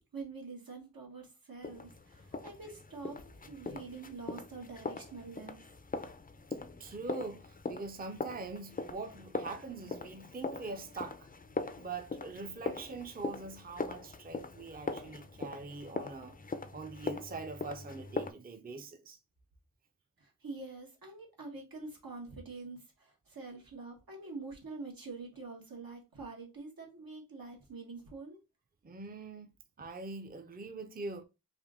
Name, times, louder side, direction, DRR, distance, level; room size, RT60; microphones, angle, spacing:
voice 1, 0.1-5.6 20.2-28.4, right 3 dB, 85° right, 1.4 m, -46 dB
sound 1, 1.6-18.3, left 3 dB, 25° left, 0.4 m, -41 dB
voice 2, 6.8-11.3 11.8-16.4 16.7-19.2 28.8-29.5 29.8-31.2, right 3 dB, 25° right, 0.5 m, -43 dB
3.5 x 2.5 x 3.6 m
wide cardioid pair, 55°, 34 cm